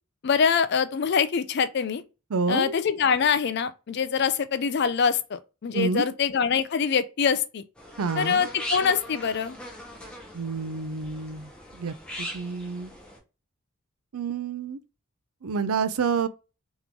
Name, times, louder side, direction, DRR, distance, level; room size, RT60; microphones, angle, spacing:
voice 1, 0.2-2.0 2.5-7.6 8.1-9.6, left 6 dB, 50° left, 0.4 m, -24 dB
voice 2, 2.3-2.7 5.7-6.1 8.0-8.4 10.3-12.9 14.1-14.8 15.4-16.3, right 5 dB, 80° right, 0.5 m, -29 dB
sound 1, 7.8-13.2, equal, 5° left, 0.8 m, -39 dB
3.7 x 3.0 x 3.6 m
head